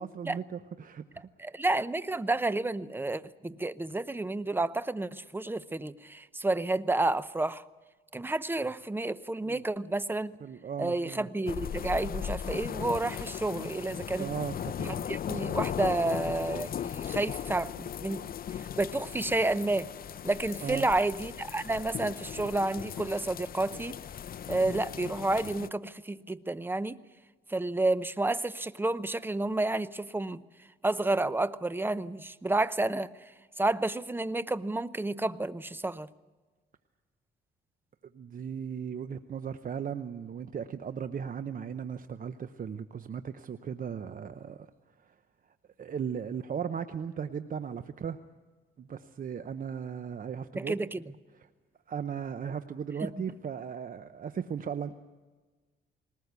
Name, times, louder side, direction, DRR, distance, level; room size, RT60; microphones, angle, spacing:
voice 1, 0.0-1.3 9.4-9.6 10.4-11.3 14.2-15.0 20.6-20.9 38.1-44.7 45.0-45.1 45.8-48.2 48.8-50.8 51.3-51.5 51.9-54.9, right 7 dB, 45° right, 11 dB, 0.8 m, -37 dB
voice 2, 1.4-7.6 8.1-10.3 10.8-14.3 14.8-18.2 18.8-19.9 20.2-24.0 24.5-27.0 27.5-30.4 30.8-33.1 33.6-36.1 50.6-51.0 53.0-53.1, right 2 dB, 10° right, 15 dB, 0.7 m, -30 dB
sound 1, 11.5-25.7, left 9 dB, 50° left, 0.6 m, -37 dB
20.5 x 19.5 x 8.2 m, 1.3 s
cardioid pair, 90°, 20 cm